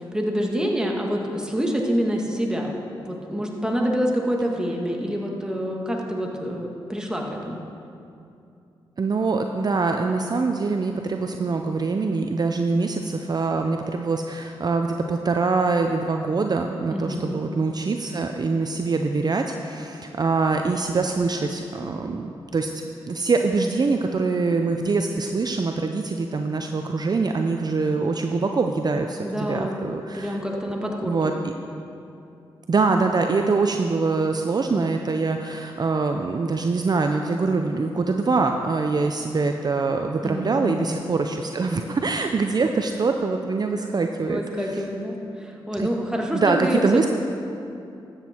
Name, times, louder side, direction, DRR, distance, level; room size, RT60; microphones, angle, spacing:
voice 1, 0.1-2.7 3.0-7.6 16.9-17.4 29.2-29.8 30.1-31.2 40.2-40.7 44.3-47.1, equal, 5° right, 0 dB, 1.9 m, -26 dB
voice 2, 9.0-30.4 31.0-31.3 32.7-44.8 45.8-45.9 46.3-47.1, right 4 dB, 45° right, 5 dB, 0.6 m, -24 dB
13.0 x 8.2 x 4.5 m, 2.7 s
cardioid pair, 50°, 10 cm